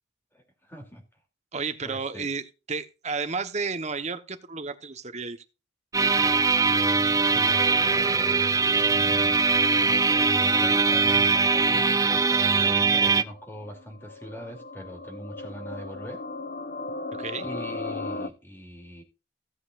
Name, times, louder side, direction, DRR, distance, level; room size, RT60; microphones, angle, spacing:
voice 1, 0.3-1.0 1.8-2.3 7.3-9.5 9.8-16.2 17.4-19.0, equal, 15° left, 2.8 m, -41 dB
voice 2, 1.5-5.4 17.1-17.5, right 4 dB, 40° right, 1.1 m, -32 dB
sound 1, 5.9-13.2, right 4 dB, 20° right, 0.5 m, -21 dB
sound 2, 13.2-18.3, left 3 dB, 50° left, 0.7 m, -37 dB
16.5 x 8.0 x 2.5 m
head